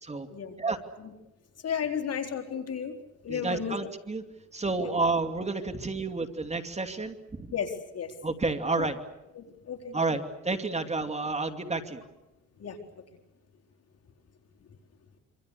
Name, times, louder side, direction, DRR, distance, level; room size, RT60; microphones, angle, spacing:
voice 1, 1.6-3.0 3.2-3.8 4.7-4.9 7.5-8.1 8.8-8.9 9.3-9.9 12.6-12.8, left 7 dB, 55° left, 3 dB, 4.2 m, -33 dB
voice 2, 3.3-4.2 4.5-7.5 8.2-9.0 9.9-12.0, right 3 dB, 20° right, 6 dB, 2.6 m, -30 dB
26.5 x 26.5 x 6.8 m, 0.99 s
cardioid pair, 90°, 30 cm